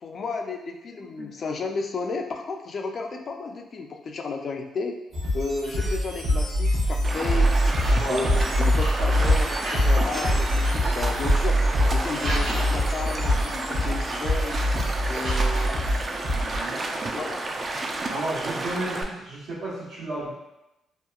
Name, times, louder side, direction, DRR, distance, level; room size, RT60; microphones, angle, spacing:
voice 1, 0.0-5.0 5.3-7.7 8.1-11.6 11.9-14.6 15.1-15.9 16.4-17.4, left 4 dB, 50° left, 3 dB, 0.3 m, -33 dB
sound 1, 5.1-16.6, equal, 60° right, 0.7 m, -24 dB
Stream, 7.0-19.0, right 2 dB, 35° right, 0.3 m, -31 dB
voice 2, 7.9-8.3 16.3-16.8 18.1-20.3, right 2 dB, 80° right, -8 dB, 1.1 m, -32 dB
2.8 x 2.1 x 2.3 m, 0.91 s
cardioid pair, 90°, 0 cm